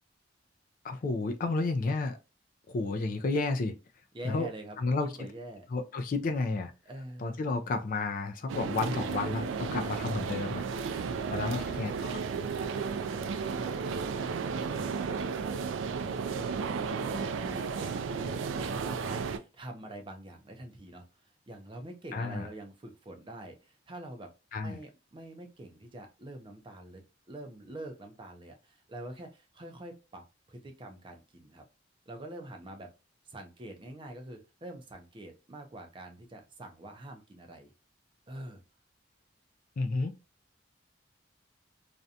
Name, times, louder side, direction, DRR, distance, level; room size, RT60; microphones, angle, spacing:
voice 1, 0.8-2.2 2.7-3.7 4.2-4.5 4.8-5.1 5.7-6.7 7.2-10.6 10.9-11.0 11.3-12.3 22.1-22.5 24.5-24.8 39.8-40.1, left 3 dB, 45° left, 0.3 m, -31 dB
voice 2, 4.1-4.8 5.0-5.7 6.9-7.5 9.8-10.0 11.1-11.7 12.5-21.1 21.5-24.3 24.6-31.7 32.1-32.9 33.3-37.7 38.3-38.6, right 1 dB, 25° right, 0.4 m, -46 dB
sound 1, 8.5-19.4, right 5 dB, 85° right, 0.3 m, -33 dB
2.5 x 2.2 x 2.6 m
head